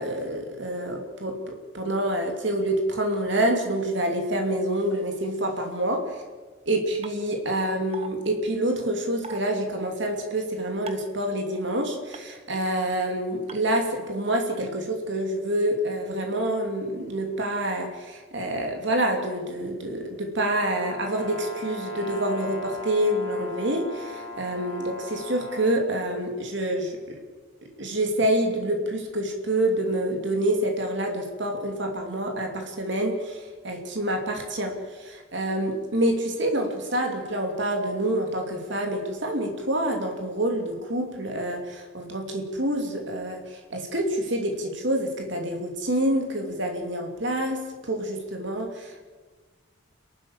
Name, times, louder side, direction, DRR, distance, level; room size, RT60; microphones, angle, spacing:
voice 1, 0.0-6.0 6.7-27.2 27.8-47.6 47.9-49.1, right 1 dB, 55° right, 2 dB, 2.9 m, -27 dB
sound 1, 7.0-7.1 7.9-8.1 9.2-9.4 10.9-11.1 12.1-12.2 13.5-13.6, right 4 dB, 30° right, 1.1 m, -37 dB
Brass instrument, 20.5-25.8, left 2 dB, 75° right, 4.8 m, -38 dB
30.0 x 12.0 x 7.3 m, 1.4 s
head